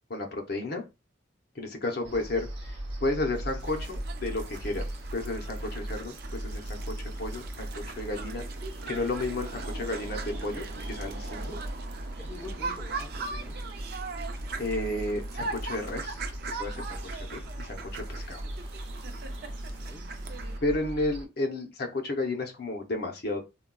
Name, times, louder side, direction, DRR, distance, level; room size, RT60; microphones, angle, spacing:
voice 1, 0.1-0.8 1.6-4.9 5.1-8.4 8.9-11.5 14.6-16.2 16.6-18.4 20.6-23.4, left 2 dB, 55° left, 0.6 m, -32 dB
voice 2, 1.7-2.2 11.4-11.6 12.2-13.6 19.4-20.1, left 2 dB, 15° left, 0.6 m, -47 dB
sound 1, 2.0-21.2, right 1 dB, 70° right, 0.8 m, -38 dB
sound 2, 3.6-20.6, right 4 dB, 55° right, 0.4 m, -41 dB
3.7 x 2.3 x 2.2 m
head